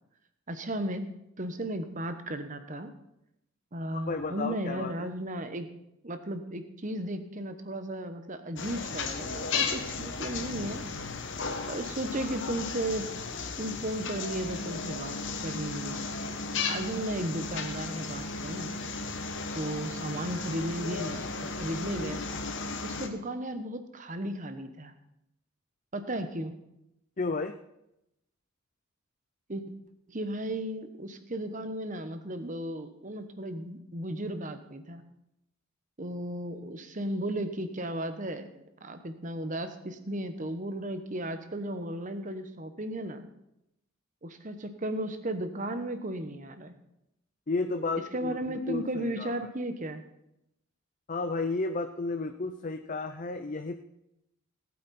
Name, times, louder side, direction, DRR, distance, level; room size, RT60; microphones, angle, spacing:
voice 1, 0.5-1.1 1.4-2.9 3.7-5.7 6.0-10.8 11.7-13.1 13.6-15.1 15.4-16.1 16.7-18.8 19.5-22.2 22.8-24.9 25.9-26.5 29.5-29.6 30.1-35.0 36.0-43.3 44.2-46.7 48.1-50.0, right 1 dB, 35° right, 9 dB, 1.1 m, -35 dB
voice 2, 3.9-5.1 27.2-27.6 47.5-49.3 51.1-53.8, left 3 dB, 35° left, 7 dB, 0.5 m, -32 dB
sound 1, 8.6-23.1, left 4 dB, 55° left, 1.2 m, -35 dB
19.0 x 8.7 x 4.3 m, 0.84 s
head